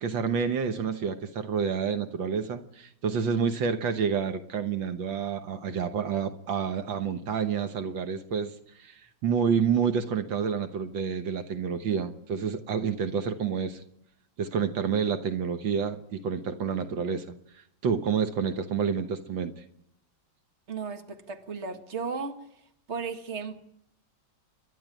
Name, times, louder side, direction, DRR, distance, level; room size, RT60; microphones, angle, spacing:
voice 1, 0.0-13.8 14.4-17.3 17.8-19.6, right 6 dB, 75° right, 9 dB, 1.9 m, -29 dB
voice 2, 20.7-22.4 22.9-23.6, right 5 dB, 35° right, 6 dB, 2.0 m, -35 dB
29.0 x 12.0 x 9.1 m, 0.78 s
omnidirectional pair, 2.1 m